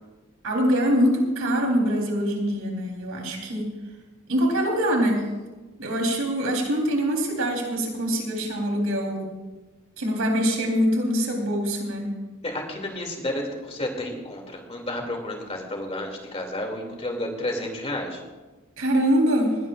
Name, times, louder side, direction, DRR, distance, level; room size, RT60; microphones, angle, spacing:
voice 1, 0.4-3.7 4.3-5.3 5.8-9.3 10.0-12.1 18.8-19.6, equal, 85° right, 1 dB, 3.8 m, -24 dB
voice 2, 12.4-18.2, left 1 dB, 30° left, 2 dB, 2.6 m, -31 dB
20.0 x 17.5 x 2.5 m, 1.2 s
head